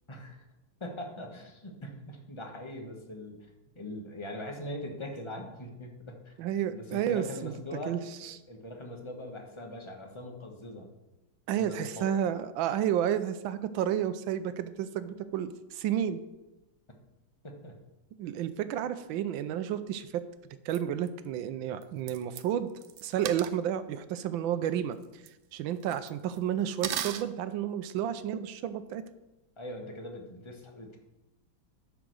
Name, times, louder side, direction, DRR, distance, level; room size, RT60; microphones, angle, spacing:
voice 1, 0.1-0.4 0.8-3.4 3.7-6.3 6.7-10.9 11.5-12.1 17.4-17.7 29.6-31.0, left 1 dB, 20° left, 2 dB, 1.0 m, -41 dB
voice 2, 6.4-7.5 7.9-8.4 11.5-16.2 18.2-20.2 20.6-22.7 23.0-25.2 25.5-29.0, right 10 dB, 90° right, 12 dB, 1.4 m, -31 dB
sound 1, 20.7-20.8 21.1-21.2 21.8-21.9 22.1-22.4 22.8-23.5 24.6-24.8 25.0-25.3 25.9-26.4 26.8-27.2, right 11 dB, 70° right, 1.2 m, -36 dB
10.5 x 5.0 x 6.4 m, 1.0 s
omnidirectional pair, 2.1 m